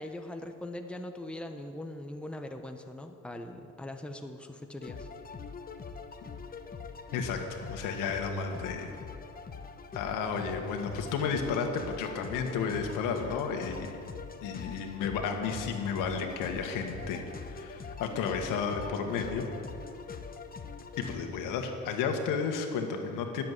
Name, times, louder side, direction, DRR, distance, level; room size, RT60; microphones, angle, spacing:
voice 1, 0.0-5.1, left 1 dB, 5° left, 5 dB, 1.1 m, -41 dB
sound 1, 4.8-21.2, left 5 dB, 30° left, 1.0 m, -43 dB
voice 2, 7.1-8.9 9.9-13.9 14.4-19.5 21.0-23.4, left 5 dB, 80° left, 4 dB, 1.9 m, -32 dB
18.5 x 7.8 x 8.3 m, 2.6 s
cardioid pair, 100°, 32 cm